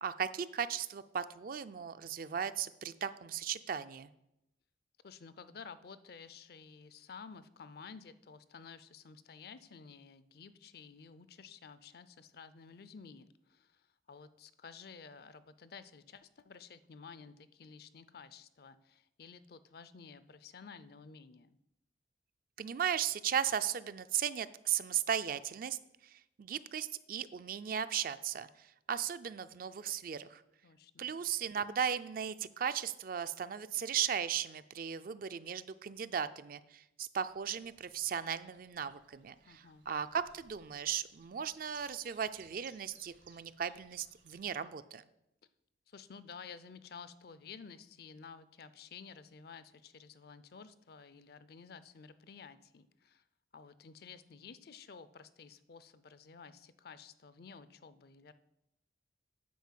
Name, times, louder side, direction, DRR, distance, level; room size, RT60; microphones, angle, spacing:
voice 1, 0.0-4.1 22.6-25.8 26.1-30.4 31.0-45.0, right 8 dB, 50° right, 12 dB, 0.4 m, -36 dB
voice 2, 5.0-21.6 30.6-31.1 39.5-39.8 45.9-53.2 53.5-58.3, left 5 dB, 55° left, 14 dB, 0.5 m, -52 dB
Chirp tweet, 37.2-44.6, right 6 dB, 70° right, 1.4 m, -63 dB
9.4 x 4.5 x 7.4 m, 0.85 s
head